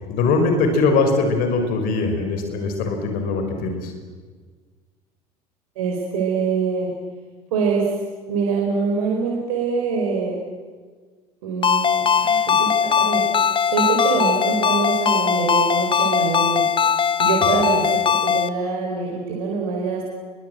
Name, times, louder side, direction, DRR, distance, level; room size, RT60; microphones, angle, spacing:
voice 1, 0.1-3.9, left 3 dB, 50° left, 5 dB, 5.2 m, -21 dB
voice 2, 5.7-6.9 7.5-7.9 8.3-10.4 11.4-16.6 17.2-20.1, right 5 dB, 65° right, -1 dB, 4.9 m, -24 dB
Ringtone, 11.6-18.5, left 7 dB, 25° left, 1.1 m, -20 dB
29.0 x 23.0 x 7.8 m, 1.5 s
figure-of-eight pair, 70°, 20 cm